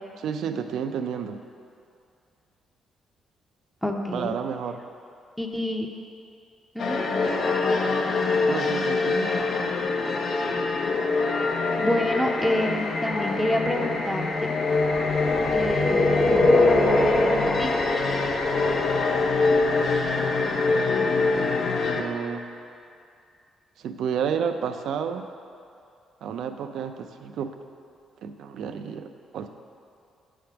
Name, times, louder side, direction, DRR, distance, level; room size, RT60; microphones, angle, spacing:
voice 1, 0.2-1.4 4.1-4.8 8.5-9.3 22.0-22.8 23.8-25.3 26.2-27.6 28.2-29.5, right 7 dB, 75° right, 8 dB, 0.4 m, -31 dB
voice 2, 3.8-4.3 5.4-5.9 6.7-7.0 11.8-14.5 15.5-17.7, left 1 dB, ahead, 0 dB, 0.6 m, -28 dB
sound 1, 6.8-22.0, left 3 dB, 60° left, 0.6 m, -25 dB
sound 2, 14.9-19.9, left 2 dB, 30° left, 1.1 m, -23 dB
7.6 x 3.5 x 5.8 m, 2.5 s
cardioid pair, 90°, 0 cm